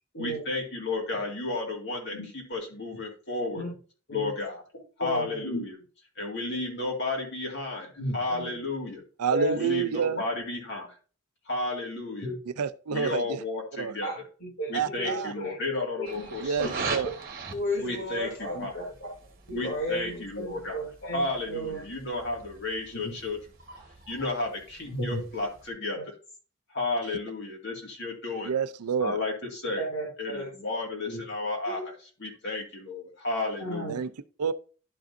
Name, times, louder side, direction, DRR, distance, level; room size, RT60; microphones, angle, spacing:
voice 1, 0.2-2.2 2.5-3.6 4.1-4.6 5.0-5.7 6.2-9.0 9.5-10.9 11.5-12.3 12.9-14.1 14.7-16.7 17.8-18.7 19.5-20.8 21.1-23.4 24.1-26.1 26.7-28.5 29.0-29.8 30.2-31.9 32.2-34.0, left 2 dB, 50° left, 2.2 m, -32 dB
voice 2, 5.0-5.6 8.0-8.5 9.3-9.6 12.2-12.3 14.0-16.3 16.6-16.7 17.5-19.1 19.5-21.8 23.0-23.1 24.9-25.2 25.9-26.0 29.8-30.5 31.1-31.3 31.7-31.8 33.6-33.9, equal, 70° left, 3.0 m, -34 dB
voice 3, 9.2-10.2 12.6-13.2 13.8-14.0 14.7-15.3 16.4-17.1 28.4-29.2 33.9-34.1 34.4-34.5, right 6 dB, 90° right, 0.5 m, -28 dB
sound 1, 16.0-25.7, right 4 dB, 40° right, 1.2 m, -42 dB
11.5 x 5.0 x 2.7 m
head